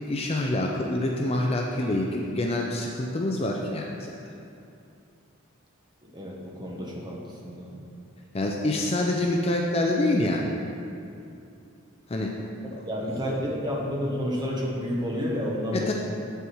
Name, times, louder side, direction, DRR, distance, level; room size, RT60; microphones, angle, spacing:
voice 1, 0.1-4.1 8.3-10.5 12.1-12.3 12.8-12.9 15.7-15.9, left 1 dB, 25° left, 0 dB, 0.4 m, -26 dB
voice 2, 6.0-7.8 12.9-15.9, equal, 20° right, -3 dB, 1.1 m, -30 dB
7.7 x 6.7 x 4.6 m, 2.6 s
head